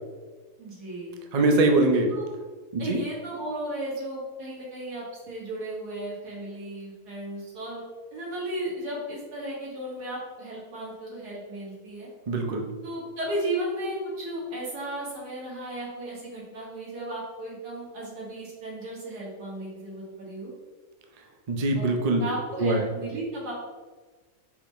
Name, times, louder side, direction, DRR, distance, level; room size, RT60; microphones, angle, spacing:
voice 1, 0.6-1.2 2.1-2.2 2.8-7.8 8.1-12.1 12.8-20.5 21.8-21.9 22.2-23.5, right 1 dB, 85° right, -6 dB, 2.3 m, -35 dB
voice 2, 1.3-2.1 2.7-3.0 12.3-12.7 21.5-22.2 22.6-22.8, right 2 dB, 40° right, 3 dB, 0.5 m, -22 dB
5.6 x 4.9 x 4.2 m, 1.4 s
omnidirectional pair, 1.6 m